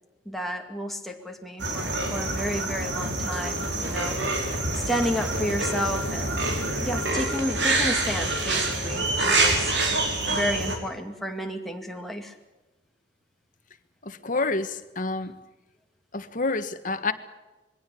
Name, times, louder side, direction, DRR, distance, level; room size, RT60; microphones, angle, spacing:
voice 1, 0.3-4.2 4.7-6.5 6.8-9.7 10.3-12.3, equal, ahead, 2 dB, 2.4 m, -31 dB
sound 1, 1.6-10.8, right 2 dB, 85° right, 4.3 m, -26 dB
voice 2, 14.0-15.4 16.1-17.1, left 3 dB, 50° left, 10 dB, 1.5 m, -28 dB
22.0 x 17.0 x 8.5 m, 1.1 s
head